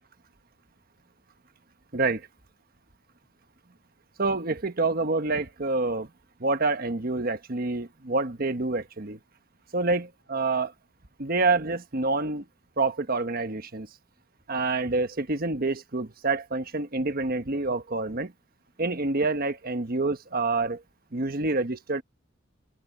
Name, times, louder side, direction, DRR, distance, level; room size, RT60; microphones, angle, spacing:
voice 1, 1.9-2.3 4.2-6.1 6.4-9.2 9.7-10.7 11.2-12.4 12.8-13.9 14.5-18.3 18.8-20.8 21.1-22.0, right 3 dB, 50° right, 1.3 m, -27 dB
open air
head